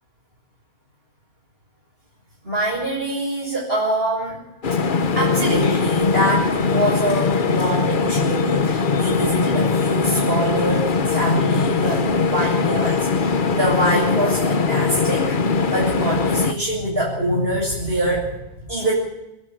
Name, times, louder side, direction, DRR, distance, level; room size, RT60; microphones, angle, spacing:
voice 1, 2.4-4.4 5.1-18.4 18.7-18.9, right 1 dB, 65° right, -6 dB, 7.6 m, -24 dB
sound 1, 4.6-16.5, left 4 dB, 50° left, 1.1 m, -21 dB
27.5 x 12.0 x 9.1 m, 0.93 s
omnidirectional pair, 1.1 m